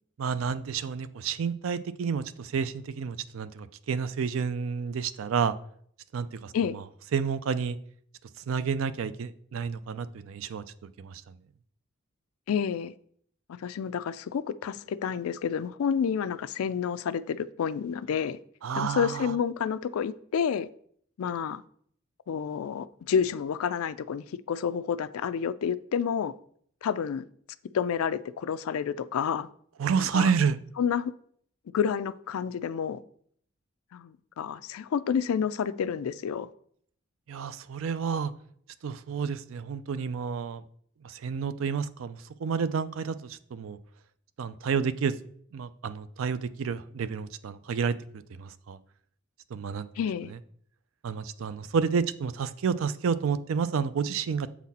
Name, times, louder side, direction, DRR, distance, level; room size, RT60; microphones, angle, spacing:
voice 1, 0.2-5.5 6.1-6.8 7.1-7.8 8.5-10.6 11.0-11.3 18.6-19.3 29.8-30.6 37.3-38.3 38.8-40.6 41.0-43.8 44.4-45.1 45.5-48.0 48.3-48.8 49.5-49.9 50.3-50.4 51.0-54.5, right 6 dB, 65° right, 0.4 m, -30 dB
voice 2, 12.5-12.9 13.6-18.4 18.7-20.7 21.2-21.6 22.3-26.3 26.8-27.3 27.7-29.5 30.0-30.3 30.8-31.1 31.7-33.0 33.9-36.5 50.0-50.3, left 7 dB, 80° left, 0.4 m, -29 dB
7.2 x 4.1 x 4.1 m
head